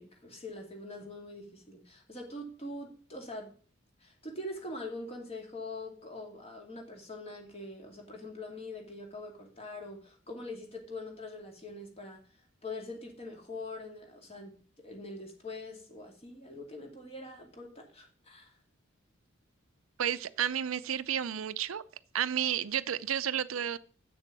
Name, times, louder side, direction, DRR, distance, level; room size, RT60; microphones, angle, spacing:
voice 1, 0.0-3.5 4.0-12.3 12.6-18.5, left 2 dB, 30° left, 2.5 m, -43 dB
voice 2, 20.0-21.8 22.1-23.8, right 9 dB, 85° right, 0.5 m, -31 dB
7.9 x 6.8 x 5.9 m
head